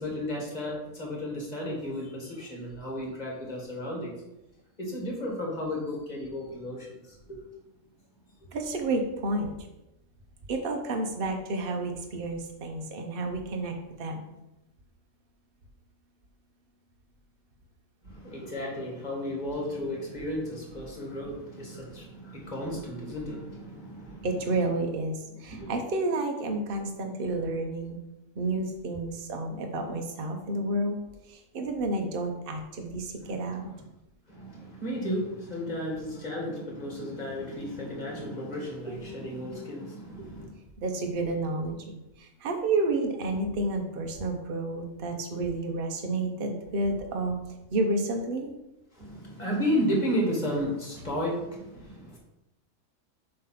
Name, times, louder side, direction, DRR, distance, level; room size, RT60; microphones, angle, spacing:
voice 1, 0.0-4.1 4.8-7.0 7.3-7.4 18.0-24.6 25.5-25.7 33.2-33.3 34.3-40.5 49.0-52.2, equal, 30° left, -2 dB, 2.0 m, -33 dB
voice 2, 8.5-9.5 10.5-14.4 24.2-28.0 28.3-31.0 31.3-33.7 40.8-47.4 47.7-48.5, right 2 dB, 45° right, 3 dB, 1.0 m, -30 dB
7.4 x 3.3 x 5.8 m, 0.94 s
omnidirectional pair, 1.4 m